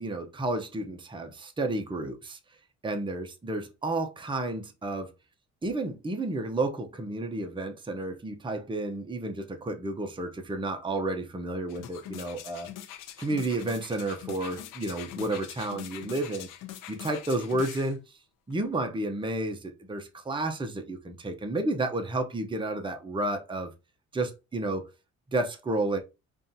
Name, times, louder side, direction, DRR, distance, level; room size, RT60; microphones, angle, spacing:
voice 1, 0.0-2.4 2.8-5.1 5.6-12.7 13.2-16.5 16.9-18.2 18.5-23.7 24.1-24.9 25.3-26.0, right 2 dB, 15° right, 0.8 m, -31 dB
sound 1, 11.7-18.0 18.5-18.6, left 11 dB, 85° left, 0.7 m, -43 dB
5.5 x 2.6 x 2.7 m
cardioid pair, 90°, 30 cm